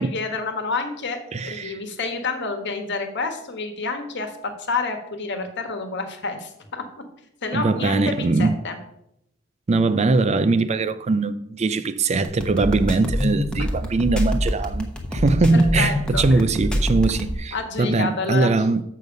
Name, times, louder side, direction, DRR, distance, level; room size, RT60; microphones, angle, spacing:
voice 1, 0.0-6.8 7.4-8.8 15.5-16.2 17.5-18.5, left 3 dB, 60° left, 1.3 m, -28 dB
voice 2, 1.3-1.8 7.5-8.6 9.7-18.8, right 3 dB, 35° right, 0.4 m, -21 dB
sound 1, 12.2-17.4, left 1 dB, 5° left, 1.1 m, -25 dB
7.0 x 6.4 x 5.2 m
head